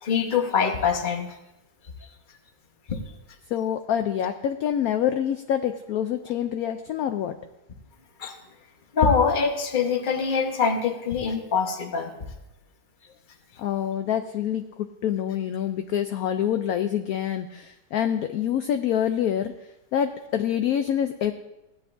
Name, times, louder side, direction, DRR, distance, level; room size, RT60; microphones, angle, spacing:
voice 1, 0.0-1.3 2.9-3.0 8.2-8.4 8.9-12.1, left 6 dB, 35° left, 4 dB, 1.0 m, -24 dB
voice 2, 3.5-7.4 13.6-14.6 15.0-19.5 19.9-21.3, left 9 dB, 70° left, 7 dB, 0.9 m, -26 dB
16.0 x 10.5 x 2.6 m, 0.95 s
omnidirectional pair, 1.9 m